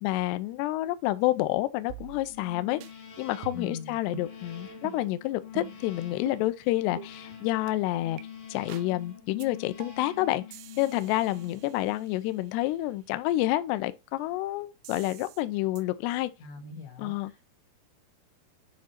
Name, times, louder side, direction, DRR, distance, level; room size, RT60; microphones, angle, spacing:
voice 1, 0.0-2.8 3.2-8.2 8.5-10.4 10.8-16.3 17.0-17.3, left 16 dB, 85° left, 2.4 m, -29 dB
sound 1, 1.9-2.5 2.8-2.9 3.4-3.8 4.1-4.3 4.9-5.0 5.6-5.9 6.3-6.4 7.0-7.1 7.7-7.8 8.2-8.3 8.7-8.9 9.4-9.5 9.8-10.1 10.5-12.4 14.9-15.4 15.8-15.9, right 12 dB, 85° right, 3.1 m, -46 dB
sound 2, 2.3-12.2, left 7 dB, 50° left, 3.2 m, -46 dB
voice 2, 3.5-4.0 16.4-17.4, left 4 dB, 70° left, 3.9 m, -41 dB
9.5 x 3.7 x 4.4 m
omnidirectional pair, 5.4 m